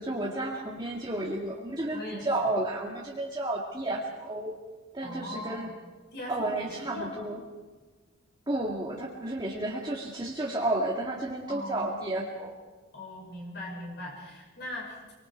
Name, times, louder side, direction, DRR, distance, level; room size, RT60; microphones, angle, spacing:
voice 1, 0.0-4.6 4.9-5.7 6.3-7.4 8.5-12.5, right 1 dB, 20° right, -3 dB, 2.3 m, -32 dB
voice 2, 1.9-2.3 5.0-5.7 6.1-7.3 11.5-11.9 12.9-15.1, left 1 dB, 55° left, -2 dB, 6.0 m, -39 dB
26.5 x 24.5 x 4.7 m, 1.4 s
head